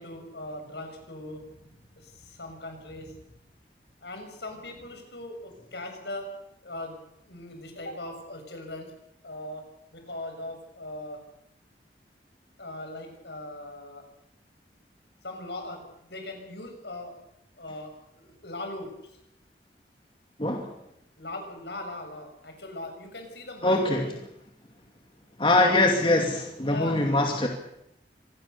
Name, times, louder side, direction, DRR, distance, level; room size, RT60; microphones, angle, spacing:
voice 1, 0.0-3.4 4.0-6.3 6.6-8.9 9.2-9.6 9.9-11.2 12.6-14.0 15.2-17.1 17.6-17.9 18.2-18.9 21.2-24.2 26.7-27.0, left 2 dB, 75° left, 4 dB, 6.7 m, -39 dB
voice 2, 20.4-20.7 23.6-24.1 25.4-27.5, left 2 dB, 30° left, 2 dB, 2.4 m, -23 dB
25.5 x 19.5 x 6.9 m, 0.81 s
head